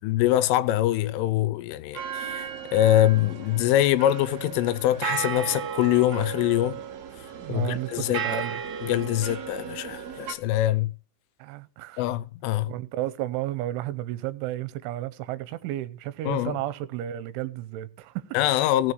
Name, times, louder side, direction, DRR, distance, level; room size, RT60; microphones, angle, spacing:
voice 1, 0.0-6.8 7.5-8.4 8.8-10.9 12.0-12.7 16.3-16.6 18.3-18.9, left 14 dB, 90° left, 3.3 m, -24 dB
sound 1, 1.9-10.3, right 8 dB, 50° right, 2.2 m, -35 dB
voice 2, 7.4-8.6 11.4-12.0 12.7-18.6, right 14 dB, 80° right, 3.3 m, -33 dB
16.5 x 7.0 x 6.3 m
omnidirectional pair, 5.5 m